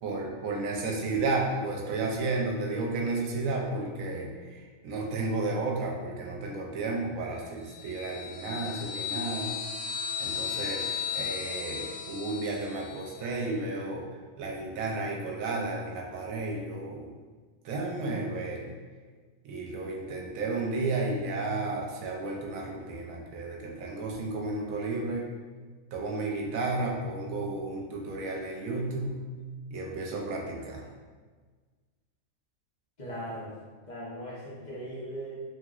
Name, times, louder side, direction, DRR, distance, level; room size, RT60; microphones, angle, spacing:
voice 1, 0.0-9.5 10.2-14.0 14.4-17.1 17.6-18.7 19.4-25.3 25.9-29.2 29.7-30.9, right 3 dB, 75° right, -1 dB, 1.0 m, -32 dB
sound 1, 7.7-13.1, left 7 dB, 85° left, 1.1 m, -35 dB
voice 2, 33.0-33.5 33.9-35.4, right 1 dB, 45° left, -7 dB, 0.6 m, -38 dB
2.9 x 2.8 x 2.4 m, 1.5 s
omnidirectional pair, 1.5 m